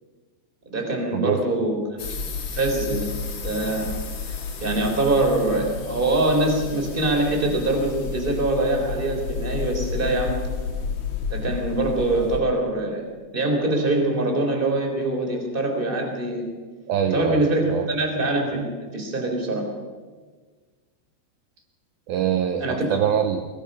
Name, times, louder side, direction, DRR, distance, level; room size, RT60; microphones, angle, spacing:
voice 1, 0.7-1.8 2.5-3.1 3.4-3.9 4.3-4.4 4.6-10.4 11.3-13.0 13.3-16.4 17.1-18.6 18.9-19.7 22.6-22.9, right 2 dB, 15° right, 2 dB, 3.4 m, -23 dB
sound 1, 2.0-12.4, left 5 dB, 45° left, 1.7 m, -31 dB
voice 2, 16.9-17.8 22.1-23.5, right 9 dB, 70° right, 5 dB, 2.6 m, -24 dB
23.0 x 21.0 x 5.6 m, 1.4 s
omnidirectional pair, 4.9 m